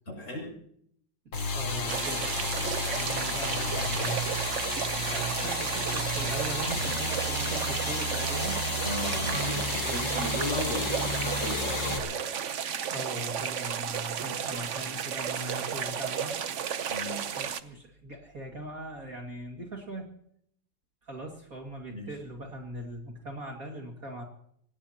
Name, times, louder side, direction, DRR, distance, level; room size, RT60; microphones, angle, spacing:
voice 1, 0.1-0.6 8.8-12.2 16.9-17.2 21.9-22.1, left 1 dB, 35° left, 0 dB, 7.5 m, -36 dB
sound 1, 1.3-12.0, left 2 dB, 55° left, 3.1 m, -32 dB
voice 2, 1.5-2.3 2.9-4.7 5.1-8.6 9.9-10.0 12.9-16.8 17.4-20.1 21.0-24.2, right 1 dB, 40° right, 1 dB, 2.5 m, -40 dB
sound 2, 1.9-17.6, right 8 dB, 60° right, 0.7 m, -33 dB
26.0 x 18.5 x 2.9 m, 0.68 s
omnidirectional pair, 2.3 m